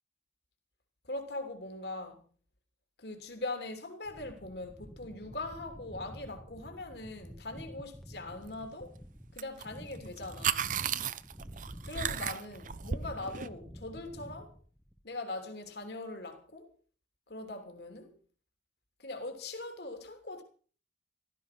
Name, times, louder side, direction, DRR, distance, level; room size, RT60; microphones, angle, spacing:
voice 1, 1.0-2.2 3.0-8.9 9.3-10.7 11.8-14.5 15.0-16.7 17.3-18.1 19.0-20.4, left 2 dB, 65° left, 3.1 m, -41 dB
sound 1, 4.1-15.2, equal, ahead, 1.0 m, -50 dB
sound 2, 9.4-9.7 9.9-13.5, right 8 dB, 45° right, 0.7 m, -34 dB
15.5 x 13.5 x 6.0 m
head